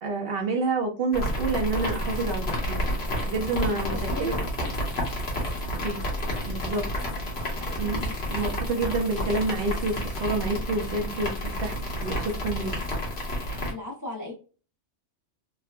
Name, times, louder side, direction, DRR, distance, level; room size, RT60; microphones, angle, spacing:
voice 1, 0.0-2.8 3.3-4.4 5.7-6.0 6.5-6.9 7.6-11.7 12.0-12.7, right 3 dB, 60° right, 1 dB, 0.7 m, -28 dB
sound 1, 1.1-13.7, equal, 60° left, 1.2 m, -30 dB
voice 2, 3.9-4.7 8.0-8.1 13.7-14.3, equal, 20° left, -2 dB, 0.5 m, -36 dB
3.5 x 2.1 x 2.4 m, 0.35 s
omnidirectional pair, 1.3 m